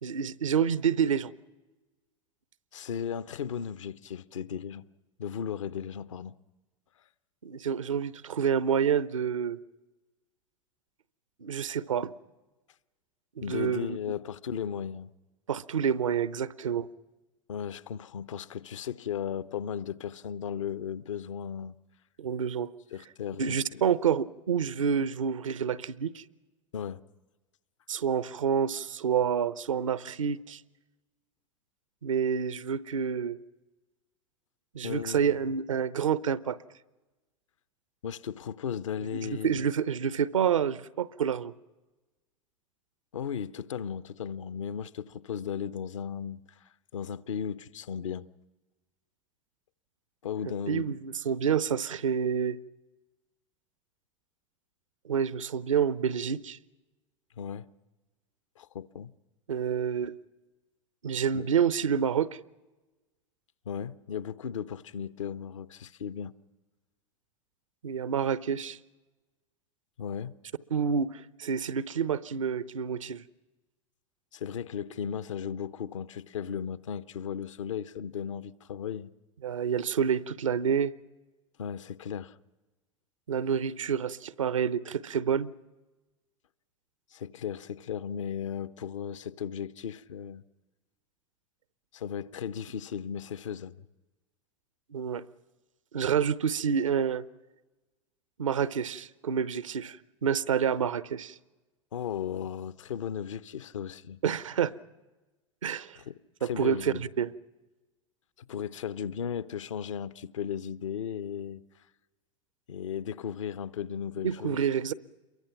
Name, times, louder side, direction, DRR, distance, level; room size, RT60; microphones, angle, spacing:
voice 1, 0.0-1.3 7.4-9.6 11.4-12.1 13.4-14.0 15.5-16.9 22.2-22.7 23.4-26.2 27.9-30.6 32.0-33.4 34.7-36.6 39.1-41.5 50.7-52.6 55.0-56.6 59.5-60.2 61.0-62.3 67.8-68.8 70.7-73.2 79.4-80.9 83.3-85.5 94.9-95.3 95.9-97.3 98.4-100.0 100.2-101.4 104.2-104.7 105.6-106.0 106.4-107.3 114.2-114.9, right 7 dB, 80° right, 0.8 m, -28 dB
voice 2, 2.7-4.8 5.2-6.4 13.4-15.1 17.5-21.7 22.9-23.9 26.7-27.0 34.8-35.5 38.0-39.6 43.1-46.4 46.9-48.3 50.2-50.9 57.4-57.7 58.6-59.1 61.3-61.4 63.7-66.3 70.0-70.4 74.3-79.1 81.6-82.4 87.1-90.4 91.9-93.8 101.9-104.2 106.0-106.1 106.4-107.1 108.4-111.6 112.7-114.7, left 8 dB, 75° left, 0.8 m, -36 dB
28.0 x 23.0 x 5.9 m
hypercardioid pair, 90°, 16 cm